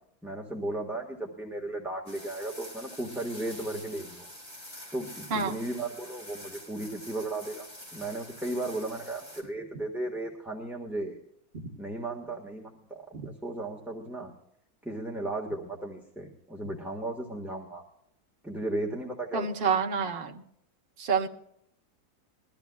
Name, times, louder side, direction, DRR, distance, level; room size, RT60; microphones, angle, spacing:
voice 1, 0.2-4.3 4.9-7.7 7.9-11.2 11.8-14.3 14.8-17.8 18.4-19.8, right 2 dB, ahead, -2 dB, 1.5 m, -35 dB
sound 1, 2.1-9.4, left 1 dB, 25° left, 4.6 m, -46 dB
voice 2, 19.3-20.4 21.0-21.3, right 5 dB, 35° right, 1 dB, 1.2 m, -27 dB
22.0 x 14.0 x 2.4 m, 0.73 s
omnidirectional pair, 2.1 m